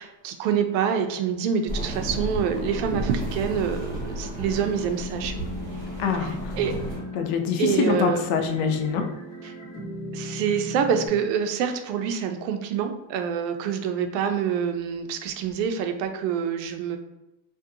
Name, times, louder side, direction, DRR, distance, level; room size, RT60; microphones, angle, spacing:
voice 1, 0.0-5.4 6.1-6.7 7.6-8.2 9.4-9.5 10.1-17.0, right 7 dB, 85° right, 6 dB, 0.6 m, -26 dB
sound 1, 1.7-7.0, right 1 dB, 15° right, 1.0 m, -33 dB
sound 2, 2.2-11.1, left 1 dB, 35° left, 0.9 m, -38 dB
voice 2, 6.0-6.3 7.2-9.0, left 6 dB, 65° left, 5 dB, 0.6 m, -24 dB
2.7 x 2.3 x 2.4 m, 0.95 s
cardioid pair, 125°, 50 cm